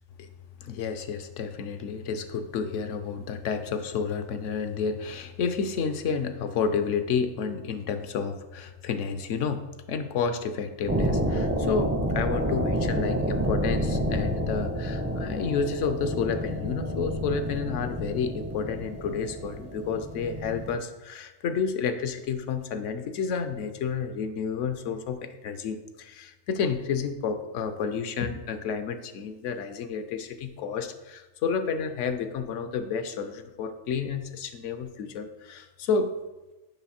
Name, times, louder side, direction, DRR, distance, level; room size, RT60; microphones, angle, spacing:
voice 1, 0.6-9.6 9.9-36.1, left 6 dB, 75° left, 9 dB, 1.0 m, -30 dB
sound 1, 10.8-20.8, equal, 20° right, 0.4 m, -29 dB
7.1 x 5.7 x 4.2 m, 1.1 s
omnidirectional pair, 1.3 m